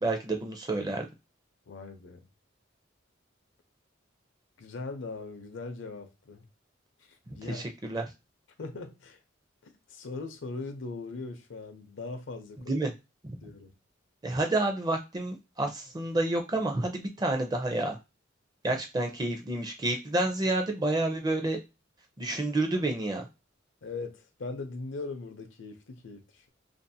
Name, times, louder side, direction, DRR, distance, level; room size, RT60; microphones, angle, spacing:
voice 1, 0.0-1.0 7.3-8.0 12.7-12.9 14.2-18.0 18.6-21.6 22.2-23.3, right 2 dB, 20° right, 0.5 m, -29 dB
voice 2, 1.7-2.2 4.6-6.4 7.1-7.6 8.6-9.2 9.6-12.8 13.4-13.7 22.3-22.4 23.8-26.5, left 3 dB, 75° left, 0.6 m, -40 dB
2.6 x 2.4 x 2.6 m
head